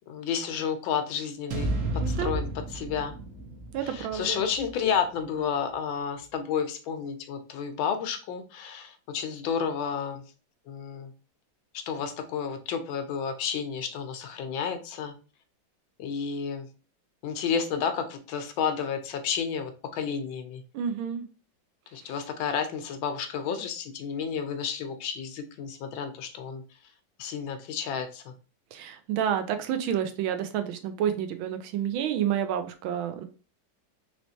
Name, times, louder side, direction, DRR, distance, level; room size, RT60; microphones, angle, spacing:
voice 1, 0.1-1.7 2.1-3.1 3.9-10.2 10.7-11.1 11.9-15.1 16.0-16.7 17.2-20.6 21.9-26.6 27.2-28.3, left 7 dB, 80° left, 7 dB, 1.4 m, -31 dB
sound 1, 1.5-5.7, right 1 dB, 60° right, 0.8 m, -33 dB
voice 2, 2.0-2.4 3.7-4.4 20.7-21.3 22.0-22.1 28.7-33.2, right 9 dB, 90° right, 8 dB, 1.4 m, -29 dB
4.2 x 3.2 x 2.7 m, 0.35 s
omnidirectional pair, 2.1 m